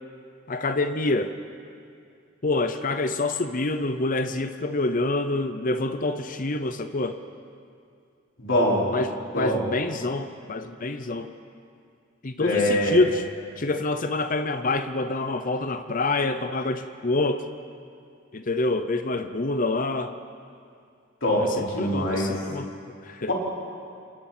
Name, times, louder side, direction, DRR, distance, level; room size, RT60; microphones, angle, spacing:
voice 1, 0.5-1.3 2.4-7.2 8.9-11.3 12.2-13.2 13.6-17.4 18.3-20.2 21.4-22.7 23.0-23.3, left 2 dB, 40° left, 9 dB, 0.7 m, -26 dB
voice 2, 8.4-8.8 9.3-9.6 12.4-13.0 21.2-22.3 23.3-23.4, equal, 65° left, -4 dB, 5.1 m, -23 dB
28.0 x 22.0 x 4.4 m, 2.4 s
head